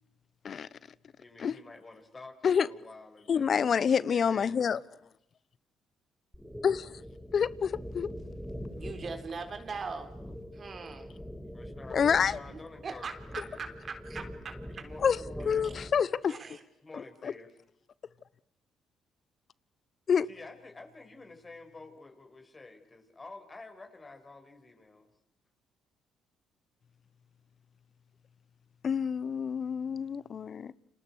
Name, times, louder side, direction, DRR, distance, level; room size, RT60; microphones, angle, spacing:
voice 1, 1.2-4.6 8.7-9.2 11.5-13.8 14.8-15.7 16.8-17.5 20.3-25.1, left 3 dB, 30° left, 6.8 m, -50 dB
voice 2, 3.3-4.8 6.6-6.9 7.3-8.1 11.9-12.4 15.0-15.2 15.4-16.3 17.2-17.3 20.1-20.3 28.8-30.7, left 7 dB, 50° left, 1.0 m, -27 dB
sound 1, 6.3-16.0, equal, ahead, 5.1 m, -43 dB
voice 3, 8.7-10.2 10.5-11.1 12.5-14.9 15.6-15.7 16.3-16.6, right 4 dB, 45° right, 3.8 m, -41 dB
30.0 x 27.5 x 6.5 m
hypercardioid pair, 50°, 0 cm